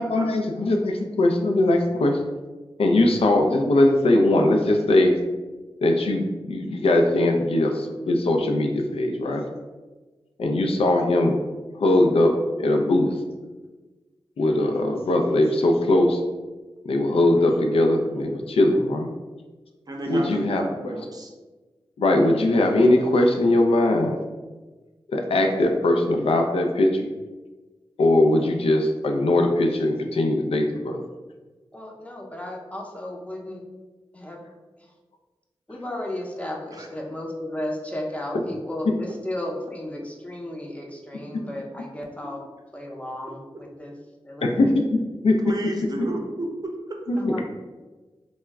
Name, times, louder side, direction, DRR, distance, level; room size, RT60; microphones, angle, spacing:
voice 1, 0.0-2.2 2.8-5.2 5.8-9.4 10.4-11.4 11.8-13.1 14.4-16.2 16.8-19.1 20.1-20.9 22.0-24.2 25.1-27.1 28.0-31.0 44.4-44.8 45.2-45.4 47.1-47.4, left 1 dB, 75° left, 3 dB, 0.4 m, -20 dB
voice 2, 19.9-21.3 36.7-36.9 45.4-47.0, right 1 dB, 40° right, 1 dB, 0.6 m, -32 dB
voice 3, 31.7-33.6 34.1-34.4 35.7-42.4 42.7-43.9 44.2-44.7 47.2-47.4, left 1 dB, 15° left, -1 dB, 0.6 m, -34 dB
2.2 x 2.0 x 3.4 m, 1.2 s
cardioid pair, 40°, 10 cm